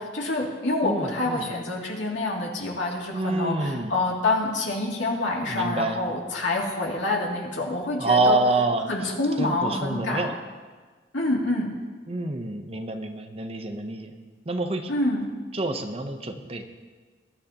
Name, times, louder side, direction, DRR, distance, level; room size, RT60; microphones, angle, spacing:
voice 1, 0.0-8.4 8.9-10.3 11.1-11.7 14.9-15.3, left 2 dB, 75° left, -2 dB, 2.6 m, -27 dB
voice 2, 0.8-1.5 3.1-3.9 5.4-6.0 8.0-9.1 9.4-10.4 12.1-14.1 14.5-14.9 15.5-16.6, right 2 dB, 30° right, 6 dB, 0.8 m, -27 dB
21.0 x 12.0 x 2.9 m, 1.4 s
head